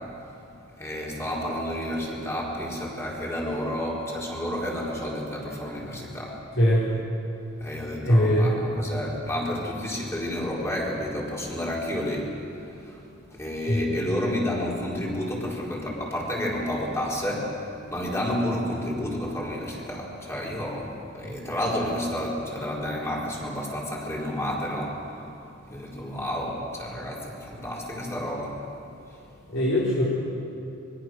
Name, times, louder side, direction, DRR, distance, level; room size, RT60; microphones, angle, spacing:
voice 1, 0.8-6.4 7.6-13.0 13.3-25.2 25.7-28.6 29.1-29.2, left 1 dB, 15° left, -4 dB, 4.6 m, -30 dB
voice 2, 8.0-8.6 13.7-13.8 21.2-21.4 29.5-30.0, equal, 70° left, -7 dB, 4.5 m, -21 dB
25.5 x 22.5 x 6.5 m, 2.7 s
head